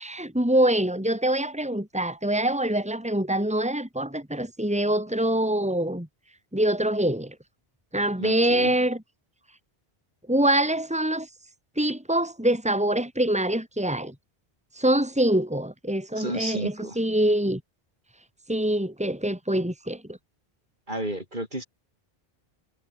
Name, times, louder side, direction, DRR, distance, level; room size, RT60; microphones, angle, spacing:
voice 1, 0.0-6.1 6.5-7.3 7.9-9.0 10.3-11.3 11.8-14.1 14.7-17.6 18.5-20.2, right 1 dB, 5° right, 3.4 m, -24 dB
voice 2, 8.2-8.7 16.2-17.0 20.9-21.6, right 1 dB, 50° right, 7.8 m, -32 dB
omnidirectional pair, 1.0 m